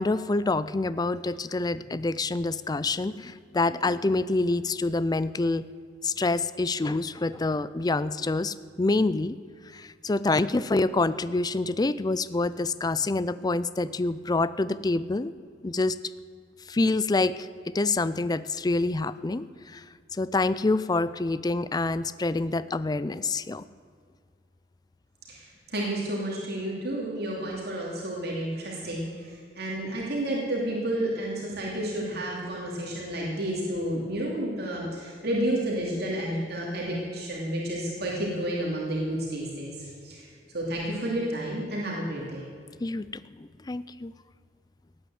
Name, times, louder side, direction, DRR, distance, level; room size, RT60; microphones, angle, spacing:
voice 1, 0.0-5.7 6.0-9.4 9.7-15.3 15.6-16.0 16.7-17.5 17.7-19.8 20.2-23.6 42.8-44.1, left 3 dB, 20° left, 15 dB, 0.4 m, -27 dB
voice 2, 25.3-40.3 40.5-42.4, right 1 dB, 60° right, -3 dB, 2.9 m, -31 dB
16.5 x 9.6 x 7.8 m, 2.1 s
head